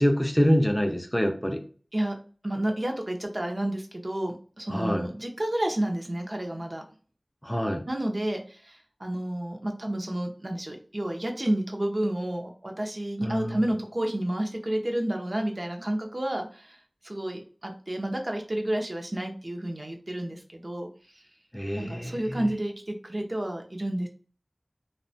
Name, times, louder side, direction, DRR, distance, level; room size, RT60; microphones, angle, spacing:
voice 1, 0.0-1.6 4.7-5.1 7.4-7.8 13.2-13.7 21.5-22.4, equal, 10° left, 4 dB, 0.4 m, -25 dB
voice 2, 2.4-6.8 7.9-16.8 17.0-20.9 21.8-24.1, right 1 dB, 50° right, 2 dB, 0.5 m, -30 dB
2.7 x 2.1 x 2.6 m, 0.40 s
wide cardioid pair, 45°, 0 cm